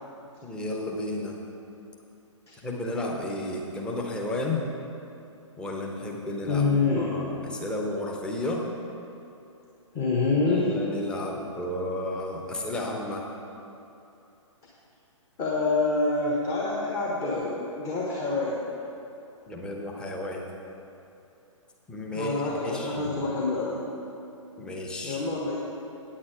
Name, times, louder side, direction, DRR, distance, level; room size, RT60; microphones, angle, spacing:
voice 1, 0.4-1.4 2.6-4.7 5.6-6.6 7.0-8.6 10.5-13.2 19.5-20.4 21.9-23.1 24.6-25.2, left 1 dB, 5° left, -1 dB, 0.8 m, -32 dB
voice 2, 6.4-7.1 9.9-10.7 15.4-18.6 22.1-23.8 25.0-25.6, left 3 dB, 20° left, -5 dB, 1.2 m, -26 dB
9.3 x 8.7 x 4.9 m, 2.8 s
figure-of-eight pair, 120°, 16 cm